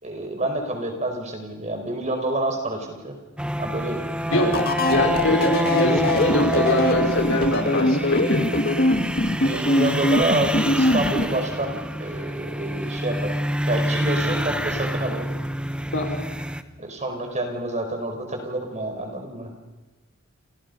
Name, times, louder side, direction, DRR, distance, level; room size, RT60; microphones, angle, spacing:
voice 1, 0.0-3.1 3.6-4.0 9.4-13.4 13.7-15.3 16.8-19.5, right 1 dB, 35° right, 4 dB, 5.1 m, -28 dB
sound 1, 3.4-16.6, right 1 dB, 5° right, 1.1 m, -27 dB
voice 2, 4.3-4.6 4.9-8.5 15.9-16.2, left 1 dB, 65° left, 2 dB, 5.5 m, -24 dB
sound 2, 4.3-11.3, left 1 dB, 45° left, 2.3 m, -22 dB
29.5 x 29.0 x 5.5 m, 1.1 s
head